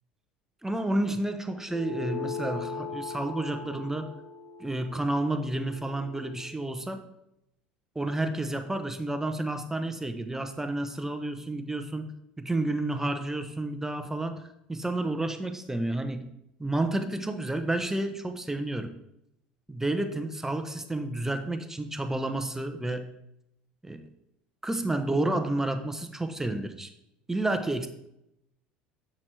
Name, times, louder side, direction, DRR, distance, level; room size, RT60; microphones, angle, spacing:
voice 1, 0.6-4.1 4.6-7.0 7.9-12.1 12.4-16.3 16.6-18.9 19.7-23.1 23.8-24.1 24.6-26.9 27.3-27.9, right 2 dB, 10° right, 7 dB, 0.8 m, -30 dB
sound 1, 1.7-6.5, left 5 dB, 40° left, 0.7 m, -39 dB
7.0 x 6.2 x 3.3 m, 0.81 s
hypercardioid pair, 75°, 5 cm